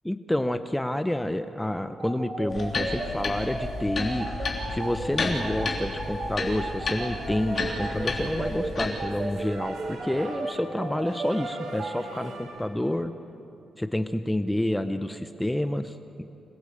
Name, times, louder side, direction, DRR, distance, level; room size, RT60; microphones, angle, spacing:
voice 1, 0.1-4.3 4.7-13.1 13.8-16.2, left 1 dB, 5° left, 9 dB, 0.5 m, -29 dB
sound 1, 2.0-11.9, right 2 dB, 35° right, 4.1 m, -34 dB
sound 2, 2.5-8.9, left 3 dB, 35° left, 3.4 m, -32 dB
sound 3, 7.2-12.7, right 3 dB, 85° right, 4.0 m, -43 dB
26.0 x 17.0 x 8.5 m, 2.9 s
wide cardioid pair, 175°, 0 cm